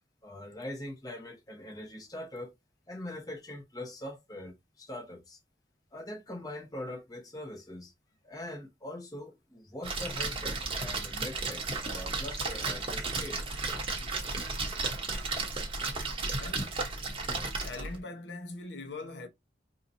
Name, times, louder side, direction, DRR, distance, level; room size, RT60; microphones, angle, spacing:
voice 1, 0.2-2.5 2.9-5.4 5.9-7.9 8.2-13.4, left 1 dB, 20° left, 0.8 m, -42 dB
Splash splatter, 9.8-18.0, right 3 dB, 30° right, 0.9 m, -34 dB
voice 2, 16.4-16.9 17.6-19.3, left 3 dB, 80° left, 0.9 m, -42 dB
4.3 x 2.7 x 2.6 m
head